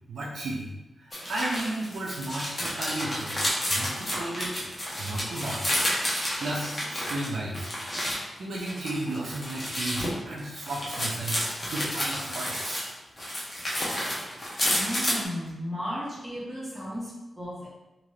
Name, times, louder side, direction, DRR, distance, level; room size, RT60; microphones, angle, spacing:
voice 1, 0.1-0.7 1.0-3.4 3.7-4.6 5.0-5.6 6.4-7.7 8.4-11.4 11.6-12.8, right 2 dB, 80° right, -4 dB, 0.5 m, -34 dB
sound 1, 1.1-8.2 8.5-12.9 13.2-15.2, equal, 25° left, 0.8 m, -30 dB
voice 2, 14.7-17.7, equal, 15° right, -8 dB, 1.3 m, -35 dB
2.9 x 2.6 x 3.1 m, 1.0 s
wide cardioid pair, 140°, 0 cm